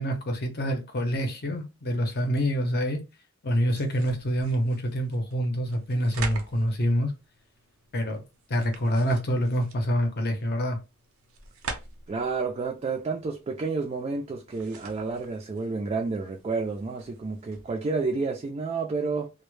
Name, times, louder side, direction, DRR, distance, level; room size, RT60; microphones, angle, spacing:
voice 1, 0.0-3.0 3.4-7.1 7.9-8.2 8.5-10.8, equal, 50° left, 0.6 m, -26 dB
sound 1, 3.6-18.0, right 4 dB, 80° right, 0.6 m, -45 dB
voice 2, 12.1-19.3, right 4 dB, 30° right, 0.3 m, -30 dB
2.1 x 2.0 x 3.0 m
head